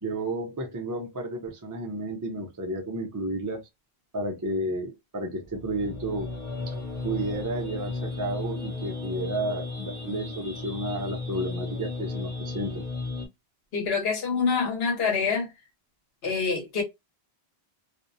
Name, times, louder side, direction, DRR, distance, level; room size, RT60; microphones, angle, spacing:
voice 1, 0.0-3.6 4.1-6.3 6.7-6.8 7.0-12.8, right 1 dB, 25° right, 0.4 m, -32 dB
sound 1, 5.4-13.3, left 3 dB, 35° left, 0.6 m, -34 dB
voice 2, 13.7-15.5 16.2-16.8, left 5 dB, 70° left, 1.1 m, -26 dB
2.4 x 2.1 x 2.6 m
omnidirectional pair, 1.1 m